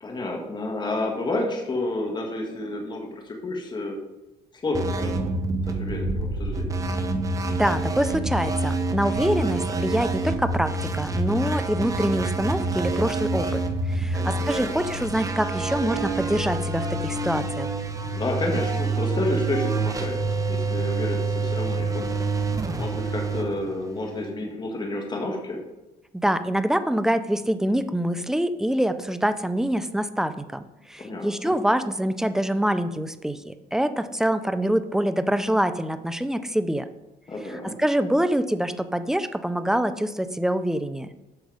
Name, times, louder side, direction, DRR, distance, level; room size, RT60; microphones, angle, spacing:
voice 1, 0.0-4.0 4.6-5.3 5.6-6.8 14.1-14.7 18.1-22.3 22.7-25.6 31.0-31.5 37.3-37.7, left 2 dB, 25° left, 1 dB, 1.6 m, -30 dB
sound 1, 4.7-24.3, right 3 dB, 20° right, 1.0 m, -27 dB
voice 2, 7.5-13.6 13.9-17.7 26.1-36.9 37.8-41.1, right 1 dB, 5° right, 11 dB, 0.5 m, -25 dB
8.1 x 6.3 x 4.9 m, 1.0 s
cardioid pair, 110°, 17 cm